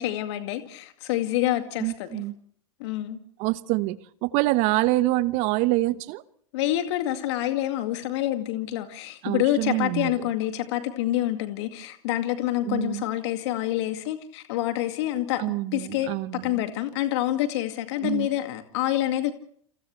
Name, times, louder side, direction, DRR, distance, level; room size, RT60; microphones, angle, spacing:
voice 1, 0.0-2.2 2.8-3.2 6.5-15.4 15.7-16.1 16.4-19.3, left 14 dB, 55° left, 2.1 m, -27 dB
voice 2, 1.8-2.3 3.4-6.2 9.2-10.3 12.7-13.1 15.4-16.6 18.0-18.3, right 19 dB, 45° right, 1.1 m, -26 dB
29.5 x 27.5 x 3.3 m
hypercardioid pair, 100°, 17 cm